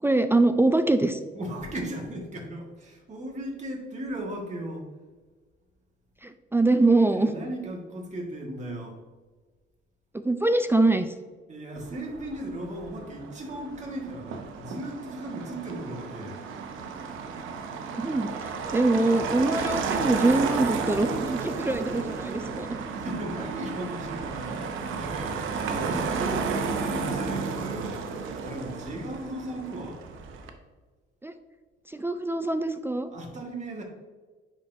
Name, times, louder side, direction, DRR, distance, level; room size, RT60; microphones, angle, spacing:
voice 1, 0.0-1.2 6.2-7.3 10.1-11.1 18.0-22.8 31.2-31.3 31.9-33.1, right 2 dB, 10° right, 9 dB, 0.3 m, -24 dB
voice 2, 1.3-4.9 7.1-9.0 11.5-16.4 22.9-28.1 28.4-30.0 33.1-33.8, right 1 dB, 35° right, -1 dB, 1.8 m, -36 dB
Motor vehicle (road), 11.7-30.5, right 5 dB, 85° right, 0.7 m, -33 dB
9.8 x 3.9 x 2.7 m, 1.4 s
cardioid pair, 90°, 20 cm